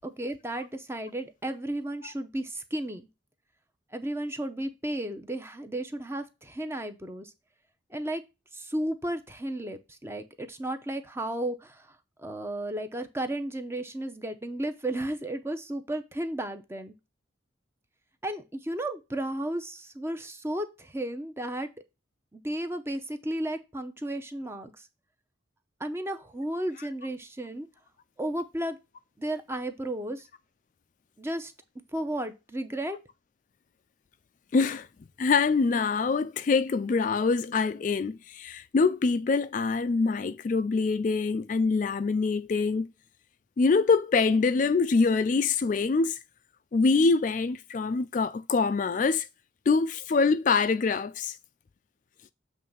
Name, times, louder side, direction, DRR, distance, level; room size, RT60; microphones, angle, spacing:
voice 1, 0.0-3.0 3.9-7.3 7.9-8.2 8.5-11.9 12.2-16.9 18.2-21.7 22.3-24.7 25.8-27.7 28.2-28.8 29.2-30.3 31.2-31.5 31.9-33.0, right 1 dB, 15° right, 0.7 m, -33 dB
voice 2, 34.5-34.9 35.2-42.9 43.6-46.2 46.7-49.3 49.7-51.4, left 4 dB, 40° left, 0.3 m, -25 dB
7.5 x 3.2 x 5.3 m
head